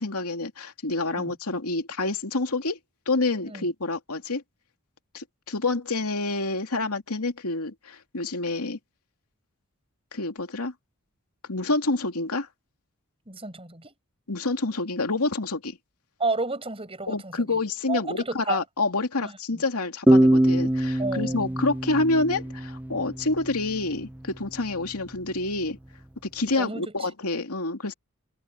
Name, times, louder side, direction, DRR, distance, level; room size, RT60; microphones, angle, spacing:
voice 1, 0.0-2.8 3.1-4.4 5.1-8.8 10.1-10.7 11.5-12.5 14.3-15.8 17.1-25.8 26.2-27.9, left 2 dB, 90° left, 2.6 m, -28 dB
voice 2, 13.3-13.9 16.2-17.6 17.9-18.6 19.2-19.6 21.0-21.6 26.6-26.9, right 3 dB, 25° right, 6.5 m, -32 dB
sound 1, 20.1-23.5, right 1 dB, 5° right, 0.6 m, -22 dB
head